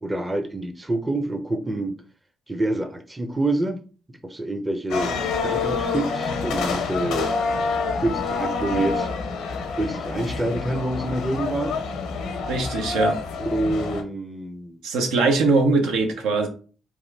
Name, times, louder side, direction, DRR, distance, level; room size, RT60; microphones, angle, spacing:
voice 1, 0.0-1.9 2.5-3.8 4.1-7.3 8.0-9.1 9.8-11.8 13.4-14.8, right 2 dB, 20° right, 0.5 m, -27 dB
sound 1, 4.9-14.0, left 4 dB, 85° left, 0.6 m, -27 dB
voice 2, 12.5-13.2 14.8-16.5, right 3 dB, 85° right, 0.5 m, -21 dB
3.0 x 2.4 x 3.2 m
supercardioid pair, 65°, 0 cm